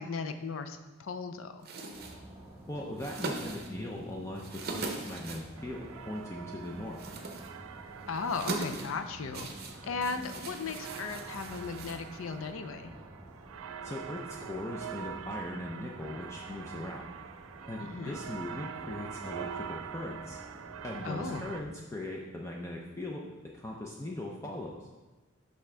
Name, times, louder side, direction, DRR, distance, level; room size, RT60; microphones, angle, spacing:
voice 1, 0.0-1.7 8.1-9.5 9.9-12.9 17.8-18.2 21.0-21.5, left 4 dB, 75° left, 8 dB, 0.5 m, -36 dB
sound 1, 1.6-12.5, right 3 dB, 50° right, 0.7 m, -42 dB
sound 2, 1.9-21.6, right 1 dB, 15° right, 1.1 m, -50 dB
voice 2, 2.7-4.5 4.7-7.0 13.8-17.1 17.7-20.4 20.8-23.2 23.5-24.7, left 1 dB, 15° left, -1 dB, 0.4 m, -39 dB
sound 3, 5.6-21.6, right 8 dB, 80° right, 0.4 m, -45 dB
6.0 x 5.6 x 3.3 m, 1.2 s
head